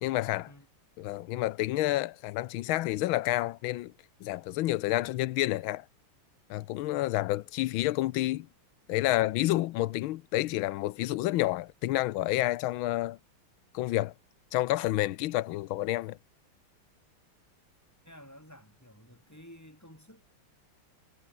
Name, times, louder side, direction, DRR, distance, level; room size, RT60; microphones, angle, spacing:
voice 1, 0.0-0.5 1.0-3.9 4.2-5.8 6.5-8.5 8.9-13.2 13.7-14.1 14.5-16.2, left 16 dB, 75° left, 1.4 m, -29 dB
voice 2, 18.0-20.3, equal, 5° left, 7.3 m, -52 dB
omnidirectional pair, 2.4 m